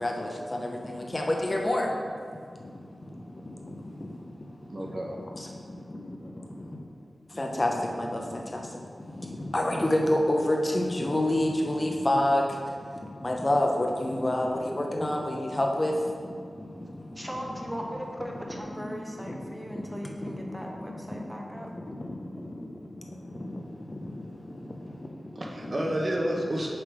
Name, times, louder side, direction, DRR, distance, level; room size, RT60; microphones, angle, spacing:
voice 1, 0.0-1.9 7.4-8.2 8.5-8.6 9.5-12.4 13.2-15.9 18.8-18.9 19.3-19.4 20.2-20.3, left 1 dB, 30° left, 1 dB, 0.6 m, -26 dB
voice 2, 4.7-5.2 25.3-26.7, right 1 dB, 45° right, -1 dB, 0.9 m, -30 dB
voice 3, 17.2-21.7, equal, 5° right, 0 dB, 0.8 m, -38 dB
6.3 x 3.9 x 4.7 m, 2.1 s
wide cardioid pair, 95°, 0 cm